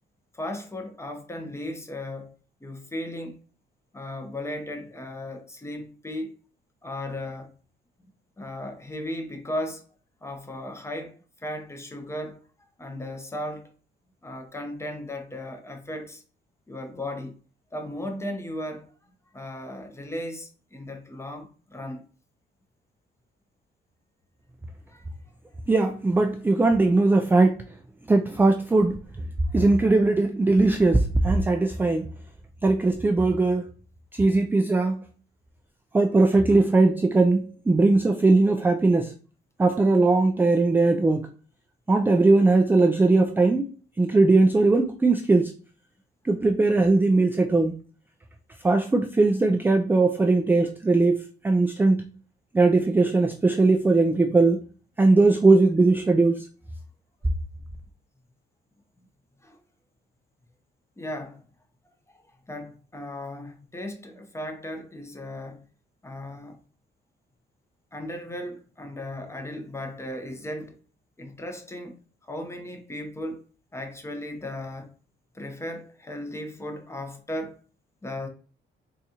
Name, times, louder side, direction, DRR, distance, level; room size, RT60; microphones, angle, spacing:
voice 1, 0.3-2.3 2.6-3.4 3.9-6.3 6.8-7.5 8.0-8.1 8.4-9.9 10.2-12.4 12.8-13.7 14.2-16.2 16.7-17.4 17.7-22.0 24.9-25.0 29.5-29.6 59.4-59.6 61.0-61.4 62.5-65.6 66.0-66.6 67.9-70.8 71.2-73.4 73.7-74.9 75.3-77.6 78.0-78.3, left 1 dB, 15° left, 0.7 m, -36 dB
voice 2, 25.7-27.6 28.1-29.0 29.5-32.1 32.6-33.7 34.1-35.1 35.9-39.1 39.6-41.3 41.9-43.7 44.0-45.5 46.2-47.8 48.6-52.1 52.5-54.6 55.0-56.5, right 3 dB, 10° right, 0.3 m, -20 dB
4.0 x 2.3 x 2.8 m
cardioid pair, 90°, 20 cm